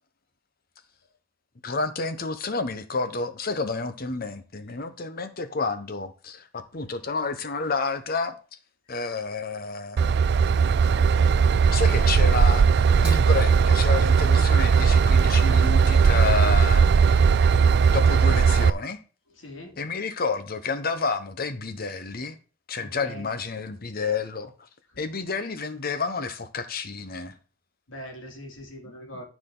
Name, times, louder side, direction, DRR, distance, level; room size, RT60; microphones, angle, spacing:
voice 1, 1.6-8.4 8.9-10.3 11.6-12.7 13.0-17.2 17.8-19.0 19.8-22.4 22.7-24.5 25.0-27.3 28.8-28.9, left 4 dB, 50° left, 1.0 m, -30 dB
Train / Engine, 10.0-18.7, right 6 dB, 60° right, 0.3 m, -18 dB
voice 2, 19.4-19.9 22.8-23.2 27.9-29.3, equal, 90° left, 2.8 m, -41 dB
13.5 x 5.0 x 3.9 m
head